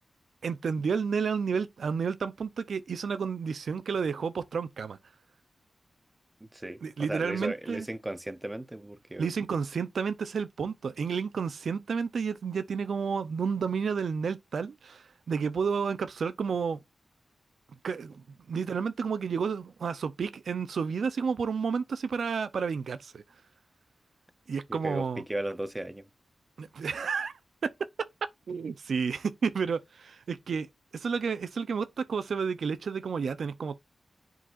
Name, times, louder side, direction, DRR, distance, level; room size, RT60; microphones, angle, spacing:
voice 1, 0.4-5.0 6.8-7.9 9.2-16.8 17.8-23.2 24.5-25.2 26.6-27.3 27.6-27.7 28.5-30.7 30.9-33.8, right 6 dB, 85° right, 0.5 m, -31 dB
voice 2, 6.4-9.3 24.7-26.1, right 1 dB, 15° right, 0.5 m, -36 dB
10.0 x 3.9 x 2.4 m
wide cardioid pair, 140°, 0 cm